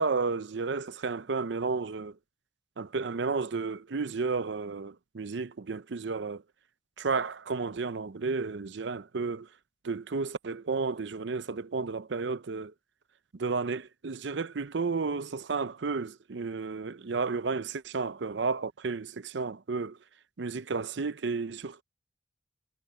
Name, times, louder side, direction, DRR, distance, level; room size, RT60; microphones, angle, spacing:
voice 1, 0.0-2.1 2.8-6.4 7.0-9.5 9.8-12.7 13.4-20.0 20.4-21.8, right 4 dB, 75° right, 0.6 m, -32 dB
head